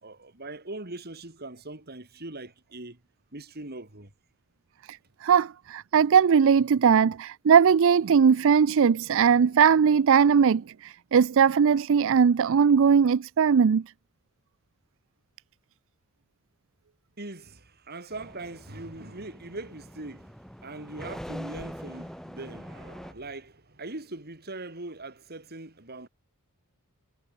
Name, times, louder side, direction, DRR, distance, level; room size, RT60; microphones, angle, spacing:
voice 1, 0.0-3.0 3.3-4.1 17.2-20.4 20.6-26.1, right 2 dB, 45° right, 3.7 m, -41 dB
voice 2, 4.9-13.9, right 7 dB, 60° right, 0.4 m, -20 dB
sound 1, 18.1-23.1, equal, ahead, 2.4 m, -43 dB
head